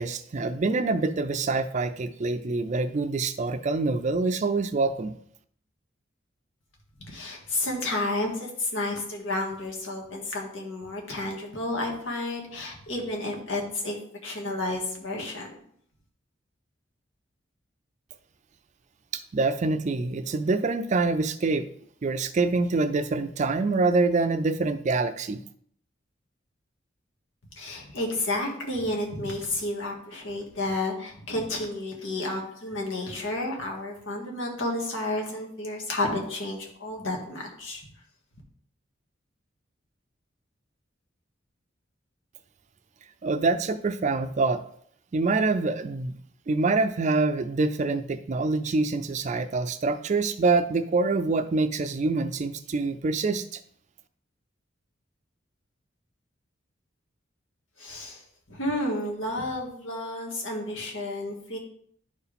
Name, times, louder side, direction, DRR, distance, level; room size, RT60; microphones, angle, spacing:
voice 1, 0.0-5.1 19.1-21.6 22.0-25.4 43.2-44.6 45.1-46.1 46.5-53.6, right 3 dB, 40° right, 10 dB, 0.4 m, -25 dB
voice 2, 7.1-14.0 14.2-15.5 27.6-37.8 57.8-58.2 58.5-61.6, left 2 dB, 85° left, 0 dB, 1.9 m, -31 dB
11.0 x 4.6 x 3.5 m, 0.64 s
head